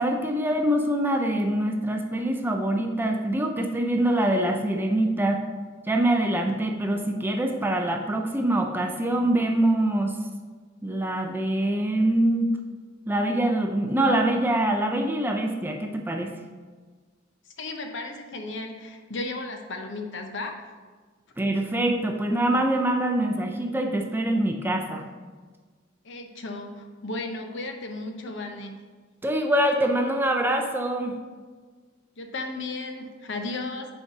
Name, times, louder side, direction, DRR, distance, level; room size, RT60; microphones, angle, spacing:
voice 1, 0.0-5.4 5.9-10.2 10.8-12.5 13.1-16.3 21.4-25.0 29.2-31.1, right 1 dB, 10° right, 3 dB, 0.5 m, -24 dB
voice 2, 17.6-20.5 26.0-28.7 32.2-33.9, left 2 dB, 60° left, 4 dB, 0.8 m, -34 dB
5.5 x 4.6 x 5.8 m, 1.4 s
head